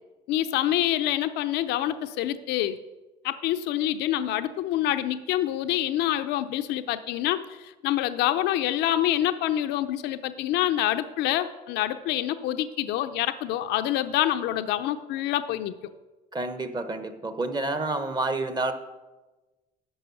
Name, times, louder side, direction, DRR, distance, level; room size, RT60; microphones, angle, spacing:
voice 1, 0.3-2.8 3.2-15.7, left 13 dB, 90° left, 10 dB, 0.6 m, -26 dB
voice 2, 16.3-18.7, right 2 dB, 25° right, 9 dB, 1.0 m, -29 dB
10.0 x 6.2 x 7.0 m, 1.2 s
cardioid pair, 110°, 17 cm